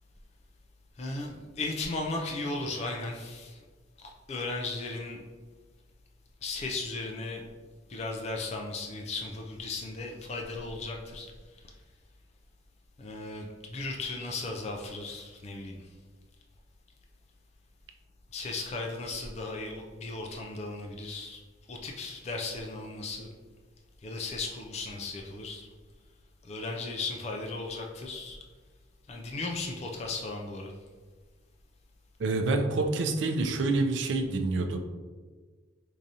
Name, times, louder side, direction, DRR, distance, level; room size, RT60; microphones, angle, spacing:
voice 1, 1.0-3.6 4.0-5.2 6.4-7.4 7.9-11.7 13.0-15.9 18.3-21.4 21.7-23.3 24.0-25.7 26.4-28.4 29.1-30.7, left 3 dB, 35° left, 1 dB, 0.3 m, -36 dB
voice 2, 32.2-34.8, right 3 dB, 70° right, 4 dB, 0.4 m, -27 dB
4.6 x 2.6 x 2.7 m, 1.4 s
head